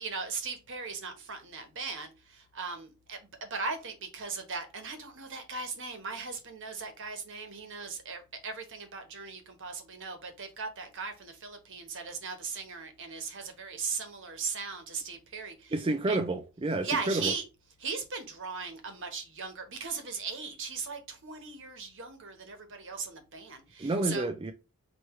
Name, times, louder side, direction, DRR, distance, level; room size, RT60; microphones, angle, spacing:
voice 1, 0.0-15.7 16.1-16.2 16.8-17.4 17.8-24.3, right 4 dB, 60° right, 1.2 m, -38 dB
voice 2, 15.7-17.3 23.8-24.5, right 2 dB, 25° right, 0.4 m, -29 dB
4.6 x 3.0 x 3.1 m
head